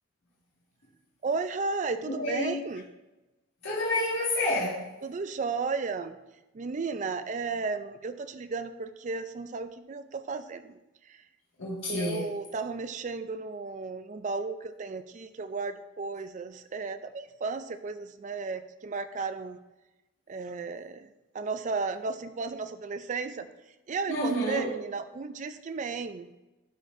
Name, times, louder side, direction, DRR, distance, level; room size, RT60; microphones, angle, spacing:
voice 1, 1.2-2.8 5.0-6.2 6.5-10.8 11.1-11.2 11.9-19.6 20.3-21.1 21.3-23.5 23.9-26.3, right 4 dB, 35° right, 11 dB, 0.4 m, -34 dB
voice 2, 2.0-2.6 3.6-4.8 11.6-12.3 24.1-24.7, left 1 dB, 80° left, -8 dB, 1.8 m, -29 dB
11.0 x 4.2 x 2.6 m, 1.0 s
head